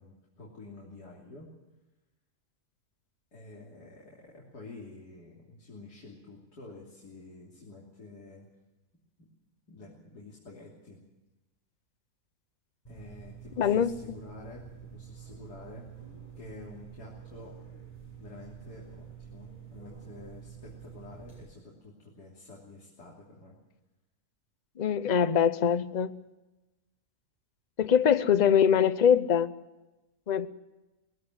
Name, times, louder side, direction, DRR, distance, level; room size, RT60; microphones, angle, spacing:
voice 1, 0.0-1.5 3.3-8.5 9.2-9.3 9.7-11.0 12.9-15.9 16.4-17.6 18.2-23.6, left 3 dB, 90° left, -4 dB, 3.7 m, -49 dB
sound 1, 12.9-21.4, right 8 dB, 25° left, 6.4 m, -48 dB
voice 2, 13.6-14.2 24.8-26.2 27.8-29.5 30.3-30.5, left 8 dB, 40° left, 13 dB, 0.6 m, -23 dB
20.5 x 16.0 x 8.0 m, 1.0 s
omnidirectional pair, 1.7 m